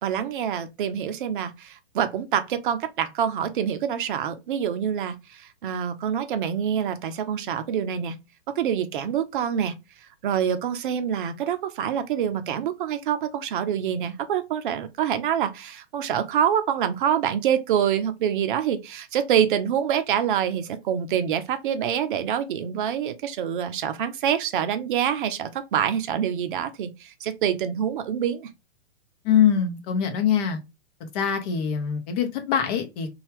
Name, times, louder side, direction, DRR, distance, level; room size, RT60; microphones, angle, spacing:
voice 1, 0.0-8.2 8.6-9.7 10.2-28.5, right 9 dB, 50° right, 0.6 m, -26 dB
voice 2, 29.2-30.6 31.0-33.1, left 8 dB, 35° left, 0.7 m, -23 dB
2.7 x 2.3 x 3.2 m
hypercardioid pair, 120°, 34 cm